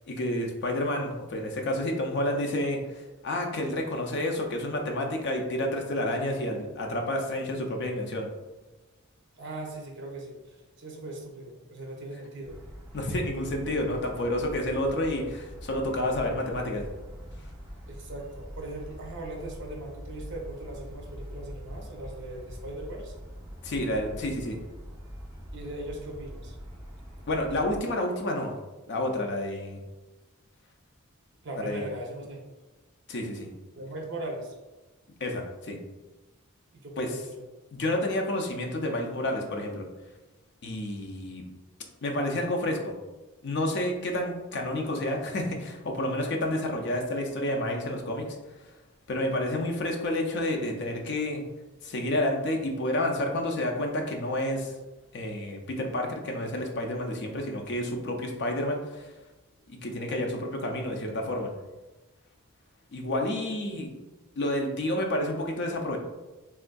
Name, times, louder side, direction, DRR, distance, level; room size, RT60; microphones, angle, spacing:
voice 1, 0.1-8.3 12.9-16.8 23.6-24.6 27.3-28.5 28.9-29.8 31.6-31.9 33.1-33.5 35.2-35.8 37.0-37.2 37.7-39.9 40.6-41.4 42.0-42.9 43.4-48.3 48.6-48.7 49.1-51.5 51.8-54.7 55.1-59.1 59.7-61.5 62.9-63.9 64.4-66.0, left 1 dB, 55° left, 2 dB, 0.5 m, -30 dB
voice 2, 9.4-12.6 17.9-23.1 25.5-26.6 31.4-32.4 33.8-34.5 36.7-37.4 63.7-63.8, right 2 dB, 55° right, 0 dB, 0.6 m, -39 dB
sound 1, 12.4-27.8, equal, 15° right, 0.7 m, -43 dB
3.5 x 2.5 x 2.2 m, 1.1 s
head